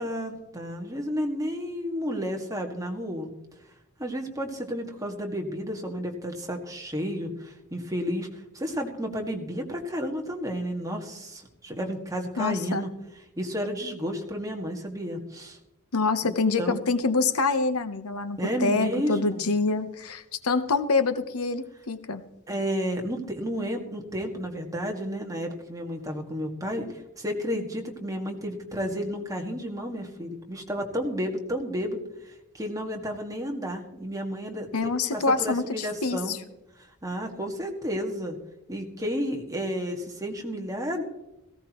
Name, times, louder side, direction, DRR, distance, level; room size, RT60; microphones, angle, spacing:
voice 1, 0.0-3.3 4.0-8.3 8.5-12.9 13.4-15.6 16.2-16.8 18.4-19.4 22.5-32.0 32.5-34.7 35.1-36.4 37.0-38.4 38.7-41.0, equal, 15° right, 2 dB, 1.9 m, -32 dB
voice 2, 12.4-12.8 15.9-22.2 34.7-36.4, left 4 dB, 70° left, 11 dB, 1.0 m, -26 dB
17.5 x 16.5 x 3.1 m, 0.90 s
head